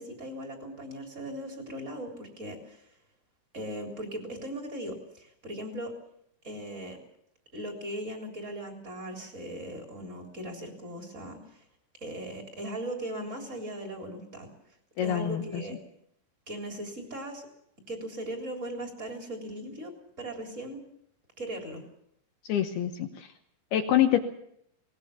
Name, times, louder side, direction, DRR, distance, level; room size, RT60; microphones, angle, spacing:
voice 1, 0.0-2.9 3.5-5.9 6.4-7.0 7.5-11.6 12.0-14.5 15.0-15.7 16.5-17.4 17.9-19.9 20.2-20.8 21.4-21.8, right 1 dB, 15° right, 3 dB, 3.2 m, -38 dB
voice 2, 15.0-15.6 22.4-23.3 23.7-24.2, left 11 dB, 70° left, 6 dB, 2.5 m, -26 dB
21.0 x 19.5 x 7.1 m, 0.72 s
omnidirectional pair, 5.6 m